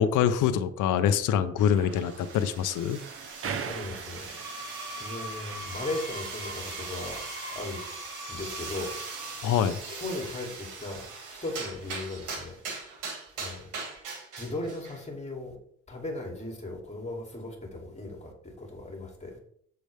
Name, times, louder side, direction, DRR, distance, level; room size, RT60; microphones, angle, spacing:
voice 1, 0.0-3.0 9.4-9.8, left 9 dB, 85° left, 10 dB, 0.7 m, -25 dB
sound 1, 1.6-6.1, right 6 dB, 45° right, 0.8 m, -41 dB
sound 2, 1.9-15.0, right 4 dB, 90° right, 1.9 m, -41 dB
voice 2, 3.6-4.3 4.9-7.2 7.5-7.8 8.3-8.9 9.9-11.1 11.4-12.6 13.4-13.7 14.4-15.5 15.9-19.4, left 2 dB, 20° left, 0 dB, 2.7 m, -37 dB
Screech, 4.2-9.6, equal, 10° right, 2.0 m, -42 dB
7.4 x 6.8 x 3.4 m, 0.64 s
cardioid pair, 90°, 30 cm